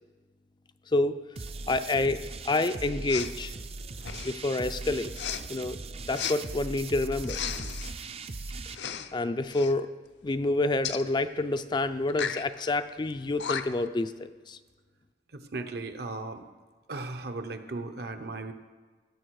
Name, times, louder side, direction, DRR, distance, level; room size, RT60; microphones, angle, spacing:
voice 1, 0.9-1.2 1.7-3.5 4.2-5.1 5.5-5.8 6.1-7.4 8.7-9.9 10.2-14.6, left 2 dB, 25° left, 10 dB, 0.4 m, -28 dB
sound 1, 1.4-8.8, right 3 dB, 35° right, 0.5 m, -39 dB
Respiratory sounds, 3.1-3.3 4.0-4.4 5.1-5.4 6.1-6.4 7.2-7.9 8.7-9.1 9.4-9.7 10.8-11.0 12.1-12.4 13.1-13.2 13.4-13.9, left 8 dB, 70° left, 0.6 m, -34 dB
voice 2, 15.3-16.5 16.9-18.5, right 3 dB, 60° right, 8 dB, 0.8 m, -36 dB
17.5 x 6.6 x 4.7 m, 1.4 s
head